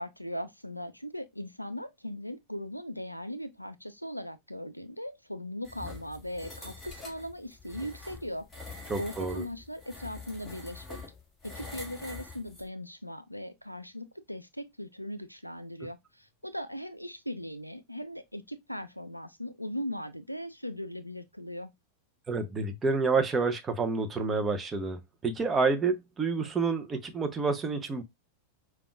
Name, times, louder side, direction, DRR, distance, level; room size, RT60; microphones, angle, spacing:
voice 1, 0.0-8.5 9.0-11.0 11.4-21.7, equal, 90° left, 0.3 m, -39 dB
sound 1, 5.6-12.7, left 3 dB, 10° left, 1.8 m, -45 dB
voice 2, 8.9-9.4 22.3-28.0, right 4 dB, 20° right, 0.6 m, -29 dB
5.1 x 2.3 x 2.2 m
figure-of-eight pair, 90°, 0 cm